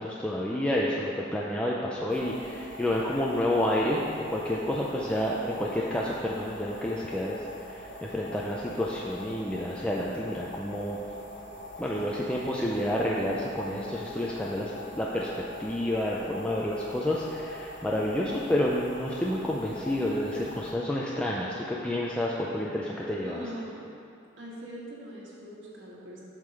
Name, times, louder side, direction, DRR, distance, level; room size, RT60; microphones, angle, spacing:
voice 1, 0.0-11.0 11.8-23.4, left 1 dB, 5° left, -5 dB, 0.4 m, -29 dB
sound 1, 2.1-20.7, left 2 dB, 65° left, 1.4 m, -44 dB
voice 2, 22.5-23.9 24.4-26.2, equal, 80° right, -5 dB, 1.6 m, -42 dB
7.6 x 3.8 x 6.2 m, 2.5 s
head